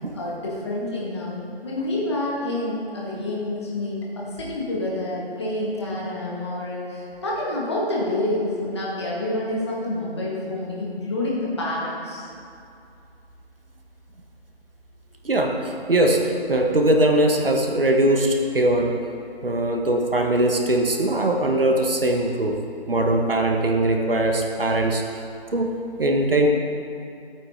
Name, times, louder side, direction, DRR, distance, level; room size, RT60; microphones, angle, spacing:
voice 1, 0.1-12.3, left 1 dB, 25° left, -5 dB, 1.8 m, -28 dB
voice 2, 15.2-19.0 19.4-22.6 22.9-25.0 25.5-25.7 26.0-26.5, right 1 dB, 60° right, 2 dB, 1.4 m, -21 dB
15.0 x 8.9 x 3.8 m, 2.6 s
figure-of-eight pair, 155°, 32 cm